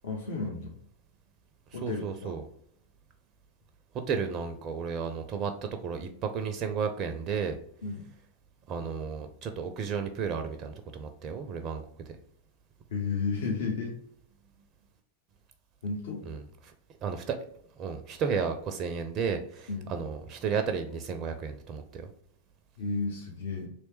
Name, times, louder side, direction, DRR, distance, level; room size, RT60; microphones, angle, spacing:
voice 1, 0.0-0.7 1.7-2.3 7.8-8.1 12.9-14.0 15.8-16.2 19.7-19.9 22.8-23.7, left 4 dB, 60° left, 0 dB, 0.6 m, -33 dB
voice 2, 1.8-2.4 3.9-7.6 8.7-11.8 16.3-16.4 17.0-17.4 17.8-22.1, right 6 dB, 35° right, 7 dB, 0.4 m, -33 dB
3.2 x 2.9 x 3.1 m, 0.66 s
figure-of-eight pair, 90°, 0 cm